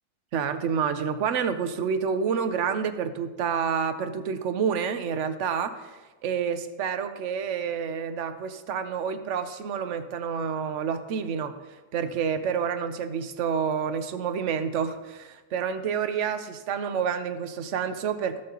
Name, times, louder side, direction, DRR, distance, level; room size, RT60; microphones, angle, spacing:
voice 1, 0.3-5.9 6.2-11.5 11.9-18.4, right 7 dB, 60° right, 10 dB, 0.9 m, -28 dB
16.5 x 6.6 x 2.9 m, 1.2 s
omnidirectional pair, 1.7 m